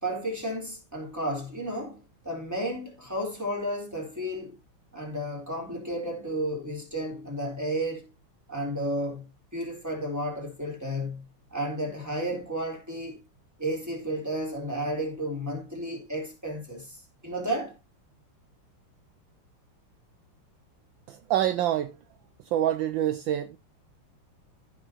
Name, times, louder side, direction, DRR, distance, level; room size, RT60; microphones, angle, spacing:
voice 1, 0.0-4.6 4.9-8.1 8.5-9.2 9.5-11.2 11.5-13.2 13.6-17.0 17.2-17.7, right 1 dB, 5° right, 3.9 m, -32 dB
voice 2, 21.1-22.0 22.4-23.6, right 12 dB, 70° right, 1.3 m, -26 dB
15.5 x 6.1 x 3.0 m
omnidirectional pair, 2.3 m